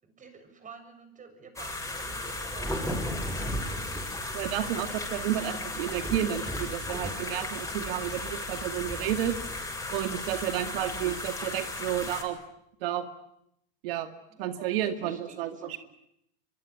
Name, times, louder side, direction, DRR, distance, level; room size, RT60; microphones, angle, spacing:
voice 1, 0.0-4.2 4.5-4.8 10.4-10.9 14.3-15.8, right 5 dB, 25° right, 8 dB, 7.1 m, -49 dB
sound 1, 1.6-12.2, left 2 dB, 10° left, 7.5 m, -36 dB
Thunder, 2.1-5.2 5.7-11.0, right 1 dB, 5° right, 5.6 m, -38 dB
voice 2, 4.3-9.3 9.9-12.4 12.8-13.0 13.8-14.1 14.4-15.5, right 12 dB, 70° right, 9 dB, 2.3 m, -31 dB
24.5 x 23.5 x 9.9 m, 0.76 s
hypercardioid pair, 110°, 30 cm